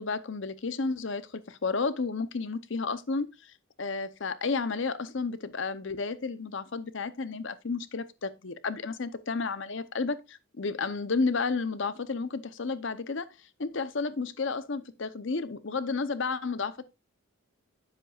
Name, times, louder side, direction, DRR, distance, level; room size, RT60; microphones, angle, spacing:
voice 1, 0.0-3.3 3.8-13.3 13.6-16.8, left 4 dB, 60° left, 0.7 m, -32 dB
9.9 x 7.5 x 2.4 m
head